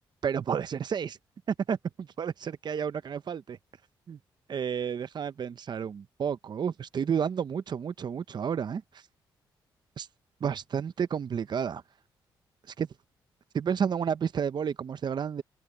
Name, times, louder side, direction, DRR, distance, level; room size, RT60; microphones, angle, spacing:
voice 1, 0.2-1.2 1.5-3.6 4.1-4.2 4.5-9.0 10.0-10.1 10.4-11.8 12.8-12.9 13.5-15.4, right 7 dB, 55° right, 0.8 m, -31 dB
supercardioid pair, 65°, 9 cm